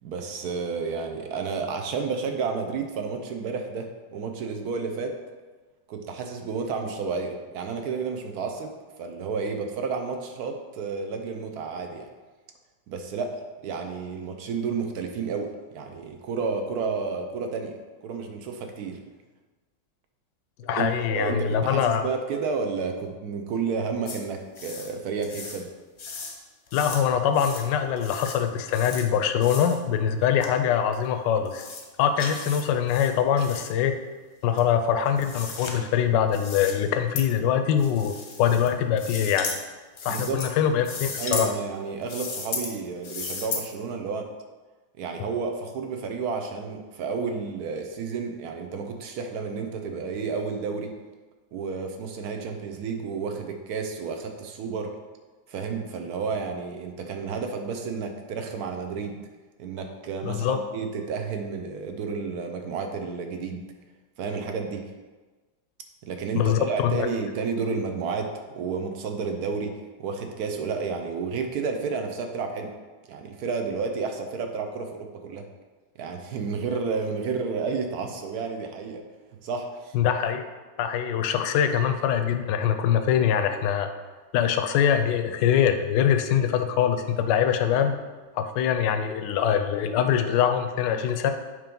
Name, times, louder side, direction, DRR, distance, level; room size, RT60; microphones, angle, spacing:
voice 1, 0.0-5.2 5.9-12.1 12.9-17.8 18.0-19.0 20.6-25.7 40.1-40.4 41.2-44.3 45.0-50.9 51.5-54.9 55.5-59.3 59.6-63.6 64.2-64.8 66.0-72.7 73.1-75.5 76.0-79.0 79.4-80.0, right 5 dB, 65° right, 4 dB, 1.0 m, -31 dB
voice 2, 20.6-22.0 26.7-31.7 32.0-34.0 34.4-39.5 40.0-41.5 60.2-60.6 66.4-66.9 79.9-80.4 80.8-83.9 84.3-88.0 88.3-91.3, left 8 dB, 75° left, 7 dB, 1.2 m, -23 dB
sound 1, 24.1-24.2 24.5-24.9 25.2-25.6 26.0-26.3 26.7-27.0 27.3-27.7 28.0-28.4 28.7-29.0 29.4-29.8 30.4-30.5 30.9-31.0 31.4-31.8 32.2-32.6 32.9-33.7 34.5-35.7 36.3-36.7 37.2-37.3 37.8-38.7 39.0-39.6 40.0-40.5 40.8-41.5 42.0-42.7 43.0-43.6, left 4 dB, 50° left, 0.9 m, -35 dB
6.8 x 3.1 x 5.2 m, 1.3 s
omnidirectional pair, 2.0 m